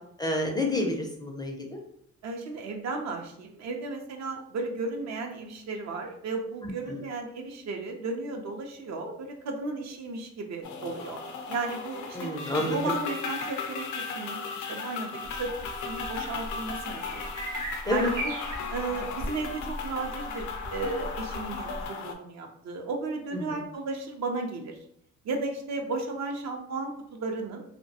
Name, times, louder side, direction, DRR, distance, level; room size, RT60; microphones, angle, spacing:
voice 1, 0.2-1.8 6.9-7.0 12.1-12.9 17.9-18.1 23.5-23.6, left 1 dB, 15° left, 1 dB, 0.4 m, -29 dB
voice 2, 2.2-11.2 11.5-15.5 15.9-17.3 17.9-18.3 18.7-24.8 25.2-27.6, right 3 dB, 65° right, 3 dB, 0.5 m, -34 dB
sound 1, 10.6-22.1, left 5 dB, 75° left, 0.5 m, -36 dB
sound 2, 15.2-21.9, right 1 dB, 90° right, 0.9 m, -38 dB
2.3 x 2.1 x 2.7 m, 0.69 s
cardioid pair, 90°, 30 cm